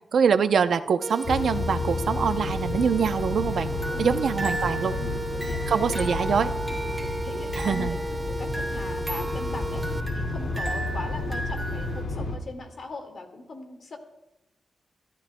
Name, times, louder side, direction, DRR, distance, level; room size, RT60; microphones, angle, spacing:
voice 1, 0.1-3.7 4.0-5.0 5.7-6.5 7.6-8.0, right 6 dB, 70° right, 10 dB, 0.7 m, -24 dB
sound 1, 1.0-10.0, right 2 dB, 15° right, 0.5 m, -34 dB
sound 2, 1.2-12.4, left 2 dB, 70° left, 2.3 m, -31 dB
sound 3, 3.7-12.0, right 1 dB, ahead, 3.3 m, -36 dB
voice 2, 3.9-4.6 5.0-6.1 6.8-9.8 10.1-14.0, left 3 dB, 55° left, 4 dB, 2.1 m, -40 dB
27.0 x 13.5 x 2.3 m, 0.91 s
wide cardioid pair, 135°, 0 cm